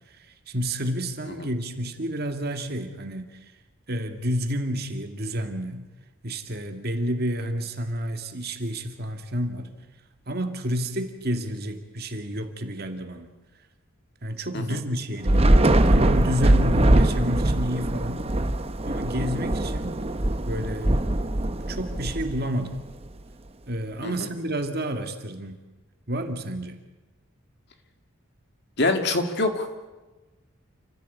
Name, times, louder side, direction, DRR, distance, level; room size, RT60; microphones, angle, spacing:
voice 1, 0.0-3.5 3.9-5.9 6.2-9.7 10.3-13.3 14.2-18.3 18.8-20.0 20.5-21.0 21.7-22.7 23.7-25.6 26.1-26.8, equal, 50° right, 6 dB, 2.0 m, -30 dB
Thunder / Rain, 15.2-22.8, right 1 dB, 30° right, 0.9 m, -22 dB
voice 2, 28.8-29.7, left 2 dB, 55° left, 6 dB, 2.3 m, -25 dB
28.0 x 15.5 x 8.4 m, 1.2 s
head